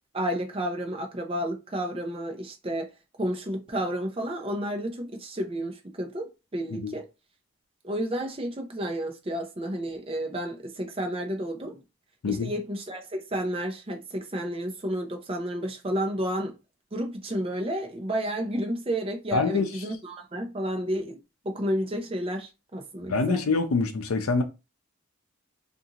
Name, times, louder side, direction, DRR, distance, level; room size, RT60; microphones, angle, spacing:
voice 1, 0.1-2.9 3.2-7.0 7.8-11.8 12.2-16.5 16.9-21.2 21.4-23.4, right 1 dB, 25° right, 0.5 m, -31 dB
voice 2, 19.3-19.7 23.1-24.4, left 4 dB, 85° left, 0.5 m, -25 dB
2.5 x 2.4 x 2.8 m
head